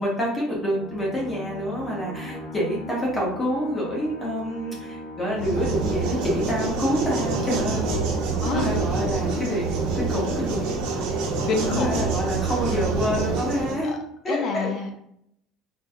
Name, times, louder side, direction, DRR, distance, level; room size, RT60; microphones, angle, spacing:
voice 1, 0.0-8.1 8.5-10.8 11.7-13.9 14.2-14.7, equal, 10° left, -4 dB, 1.2 m, -27 dB
sound 1, 0.5-11.8, left 2 dB, 90° left, 1.4 m, -39 dB
sound 2, 5.4-13.8, right 4 dB, 80° right, 1.1 m, -26 dB
voice 2, 8.4-8.8 11.5-12.1 14.3-15.0, left 4 dB, 35° left, 3 dB, 0.7 m, -27 dB
4.3 x 3.0 x 2.4 m, 0.70 s
cardioid pair, 180°, 0 cm